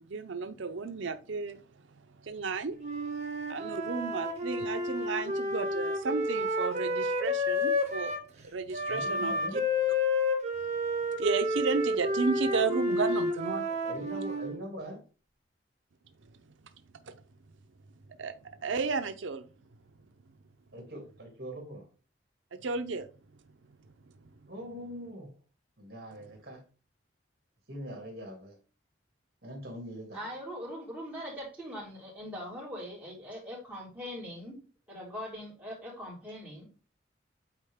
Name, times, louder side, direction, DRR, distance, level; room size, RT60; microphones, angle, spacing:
voice 1, 0.0-1.6 2.0-2.8 3.5-8.3 8.5-9.6 11.2-13.7 17.1-17.2 18.2-19.4 22.5-23.1, right 4 dB, 90° right, 8 dB, 0.6 m, -33 dB
Wind instrument woodwind instrument, 2.8-8.2 8.7-14.6, left 1 dB, 35° right, 1.8 m, -30 dB
voice 2, 8.9-9.6 13.7-15.0 20.7-21.9 24.5-25.3 25.8-26.6 27.7-28.6 29.4-30.3, equal, 55° right, 1 dB, 2.6 m, -42 dB
voice 3, 30.1-34.6 34.9-36.6, equal, 10° right, -7 dB, 3.7 m, -41 dB
8.7 x 4.2 x 3.6 m, 0.35 s
head